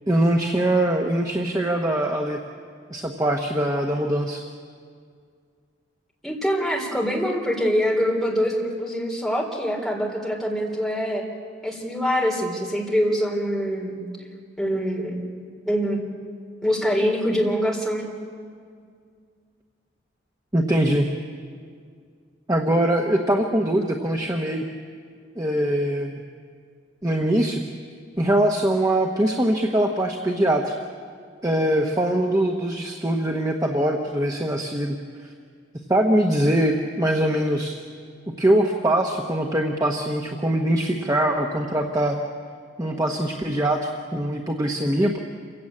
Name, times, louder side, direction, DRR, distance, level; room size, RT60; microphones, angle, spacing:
voice 1, 0.1-2.4 2.9-4.5 20.5-21.1 22.5-24.7 25.4-26.2 27.0-27.6 28.2-30.7 31.4-35.0 35.2-35.3 35.9-37.8 38.4-42.2 42.8-45.2, right 1 dB, 20° right, 1 dB, 1.0 m, -22 dB
voice 2, 6.2-11.2 11.6-14.0 14.6-15.2 15.7-16.0 16.6-18.1, equal, ahead, -2 dB, 3.5 m, -24 dB
27.5 x 15.5 x 8.6 m, 2.1 s
head